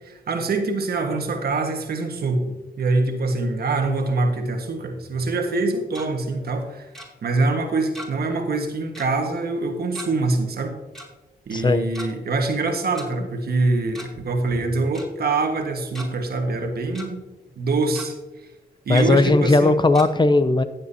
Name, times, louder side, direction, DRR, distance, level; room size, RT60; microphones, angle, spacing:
voice 1, 0.0-2.4 2.8-6.9 7.2-10.7 11.5-17.2 17.6-18.1 18.8-19.7, right 3 dB, 70° right, 4 dB, 1.6 m, -24 dB
Tick-tock, 5.7-6.1 6.9-7.1 7.9-8.3 8.5-8.6 8.9-9.1 9.9-10.1 10.9-11.1 11.8-12.1 12.9-13.1 13.8-14.2 14.5-14.6 14.9-15.1 15.6-16.1 16.5-17.1 17.5-17.6 17.9-18.1 18.9-19.1 19.9-20.0, equal, ahead, 3.3 m, -39 dB
voice 2, 11.5-11.9 18.9-20.6, left 2 dB, 25° left, 12 dB, 0.7 m, -17 dB
15.5 x 7.6 x 2.8 m, 1.1 s
cardioid pair, 60°, 17 cm